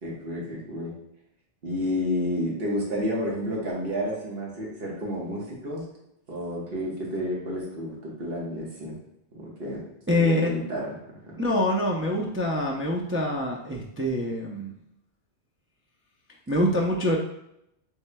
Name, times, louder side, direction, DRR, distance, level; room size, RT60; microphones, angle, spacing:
voice 1, 0.0-0.9 1.6-5.8 6.3-9.0 9.3-9.9 10.2-11.4, equal, 60° right, -4 dB, 1.5 m, -30 dB
voice 2, 10.1-10.6 11.4-14.7 16.5-17.2, left 1 dB, 20° right, -2 dB, 0.3 m, -25 dB
7.2 x 3.2 x 2.2 m, 0.79 s
omnidirectional pair, 1.1 m